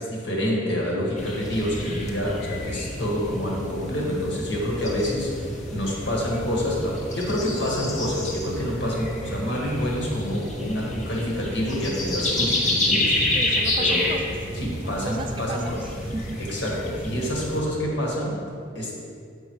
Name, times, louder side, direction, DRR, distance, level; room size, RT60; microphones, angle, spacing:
voice 1, 0.0-13.3 13.8-14.1 14.6-15.6 16.4-18.4 18.8-19.0, equal, 65° left, -3 dB, 1.6 m, -27 dB
sound 1, 1.2-17.6, left 1 dB, 40° left, 1.0 m, -29 dB
voice 2, 13.3-14.3 14.8-16.4, right 2 dB, 25° right, 4 dB, 0.4 m, -36 dB
7.0 x 5.5 x 4.6 m, 2.4 s
head